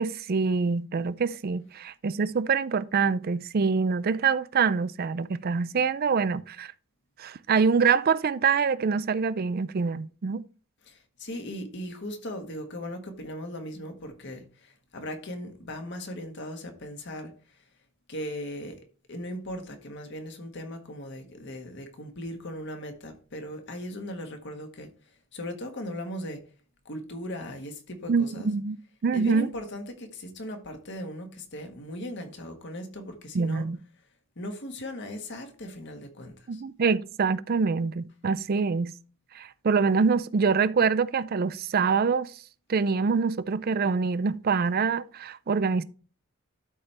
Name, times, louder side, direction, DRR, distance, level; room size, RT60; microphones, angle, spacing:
voice 1, 0.0-6.7 7.2-10.4 28.1-28.8 29.0-29.5 33.3-33.8 36.5-38.9 39.3-42.3 42.7-45.8, right 5 dB, 45° right, 0.4 m, -25 dB
voice 2, 10.8-17.6 18.1-24.9 25.3-26.5 26.8-28.5 29.1-33.7 34.3-36.6, equal, 60° left, 1.5 m, -38 dB
12.5 x 4.3 x 3.4 m
head